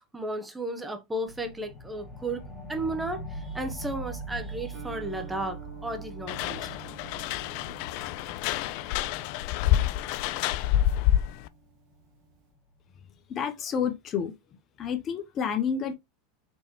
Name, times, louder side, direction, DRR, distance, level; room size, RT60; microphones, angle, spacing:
voice 1, 0.0-2.4 2.7-6.7, right 1 dB, 10° right, 1.0 m, -34 dB
sound 1, 1.3-12.3, right 2 dB, 25° left, 2.0 m, -43 dB
Guitar, 4.7-12.5, right 6 dB, 55° right, 1.4 m, -51 dB
sound 2, 6.3-11.5, left 12 dB, 60° left, 0.3 m, -27 dB
voice 2, 13.3-14.3 14.8-15.9, left 7 dB, 40° left, 0.8 m, -29 dB
4.4 x 3.2 x 3.0 m
hypercardioid pair, 95°, 0 cm